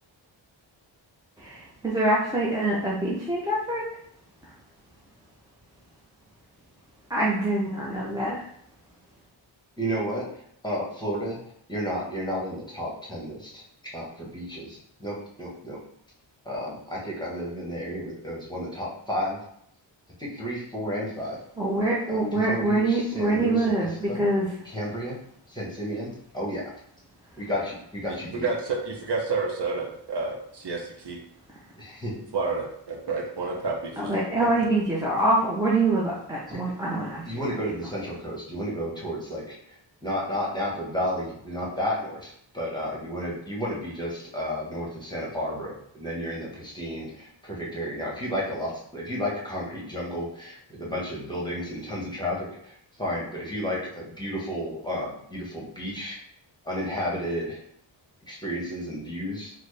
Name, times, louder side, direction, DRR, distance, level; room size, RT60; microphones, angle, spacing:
voice 1, 1.4-3.8 7.1-8.4 21.6-24.5 34.0-37.2, right 2 dB, 10° right, -6 dB, 0.5 m, -25 dB
voice 2, 9.8-11.4 11.7-13.6 13.9-15.8 16.4-19.4 20.2-21.4 22.1-24.3 24.6-25.2 25.5-26.6 27.4-28.5 31.8-32.1 36.5-36.6 37.3-56.2 56.6-57.6 58.3-59.5, equal, 10° left, -4 dB, 1.0 m, -32 dB
voice 3, 28.1-31.2 32.3-34.5, right 4 dB, 60° right, 0 dB, 0.7 m, -30 dB
4.0 x 2.1 x 3.2 m, 0.69 s
wide cardioid pair, 105°, 47 cm